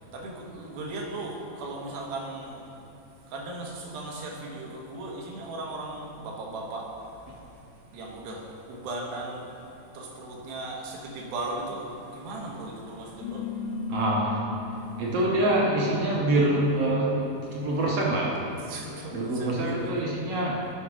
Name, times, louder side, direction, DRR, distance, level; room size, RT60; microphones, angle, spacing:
voice 1, 0.1-2.7 3.3-7.1 7.9-9.5 9.9-13.6 18.6-20.0, right 2 dB, 85° right, -1 dB, 3.2 m, -37 dB
sound 1, 13.2-18.2, left 4 dB, 90° left, 3.1 m, -38 dB
voice 2, 13.9-14.5 15.0-17.2 17.5-18.4 19.1-20.6, right 1 dB, 70° right, -3 dB, 1.5 m, -25 dB
12.5 x 5.8 x 4.9 m, 2.8 s
omnidirectional pair, 4.1 m